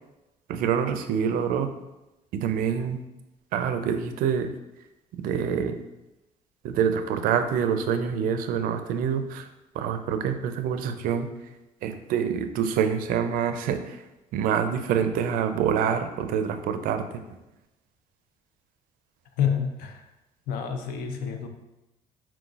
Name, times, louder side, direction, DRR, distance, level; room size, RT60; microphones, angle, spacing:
voice 1, 0.5-1.7 2.3-3.0 3.5-4.5 5.2-5.8 6.6-9.5 9.7-11.3 11.8-14.0 14.3-17.2, right 7 dB, 75° right, 8 dB, 0.4 m, -26 dB
voice 2, 19.4-20.1 20.5-21.5, left 8 dB, 85° left, 5 dB, 0.5 m, -28 dB
4.5 x 3.9 x 2.4 m, 0.99 s
cardioid pair, 160°, 15 cm